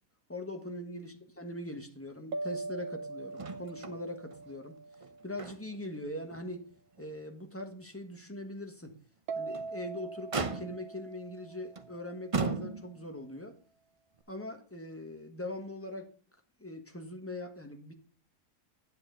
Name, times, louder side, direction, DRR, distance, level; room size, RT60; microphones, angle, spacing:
voice 1, 0.3-4.8 5.2-6.7 7.0-8.9 9.4-13.5 14.3-16.1 16.6-17.9, left 1 dB, 10° left, 5 dB, 1.3 m, -41 dB
sound 1, 2.3-5.8 9.3-12.3, right 3 dB, 75° right, 1.3 m, -42 dB
Motor vehicle (road), 3.4-4.0 4.3-4.4 4.9-5.9 6.3-6.4 7.0-7.1 9.3-9.8 10.3-11.0 11.8-11.9 12.3-13.1 14.2-14.3, right 4 dB, 30° right, 0.7 m, -36 dB
9.2 x 8.5 x 3.9 m, 0.41 s
omnidirectional pair, 1.5 m